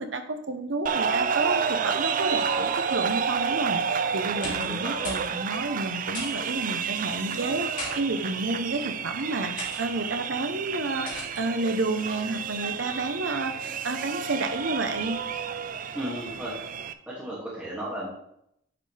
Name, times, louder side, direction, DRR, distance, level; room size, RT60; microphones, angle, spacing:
voice 1, 0.0-15.2, right 2 dB, 70° right, 7 dB, 0.9 m, -30 dB
sound 1, 0.9-16.9, right 6 dB, 45° right, 0.4 m, -30 dB
sound 2, 4.3-4.8 5.0-5.3 5.6-5.7 6.1-6.5 7.5-7.9 8.7-8.9 9.6-9.8 11.1-11.4, left 2 dB, 45° left, 2.6 m, -37 dB
voice 2, 15.9-16.5 17.1-18.1, equal, 5° right, -8 dB, 2.2 m, -34 dB
9.4 x 5.5 x 3.4 m, 0.75 s
head